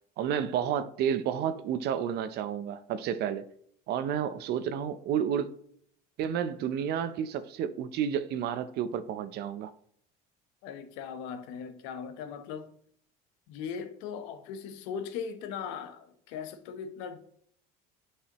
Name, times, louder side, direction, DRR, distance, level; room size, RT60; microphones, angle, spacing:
voice 1, 0.2-3.4 3.9-5.5 6.2-9.7, right 8 dB, 55° right, 0.6 m, -31 dB
voice 2, 10.6-12.7 13.5-17.2, left 7 dB, 80° left, 0.9 m, -39 dB
8.4 x 4.8 x 3.0 m
cardioid pair, 120°, 20 cm